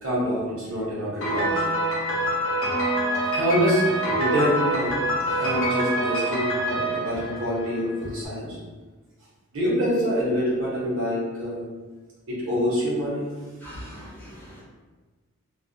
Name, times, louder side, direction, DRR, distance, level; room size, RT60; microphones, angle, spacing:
voice 1, 0.0-1.6 3.3-5.0 5.3-8.6 9.5-11.7 12.3-13.3, equal, 65° right, -7 dB, 0.9 m, -26 dB
Piano, 1.2-8.0, right 1 dB, 65° left, 0.6 m, -25 dB
voice 2, 13.6-14.6, equal, 10° left, -8 dB, 0.6 m, -43 dB
2.3 x 2.1 x 2.6 m, 1.3 s
head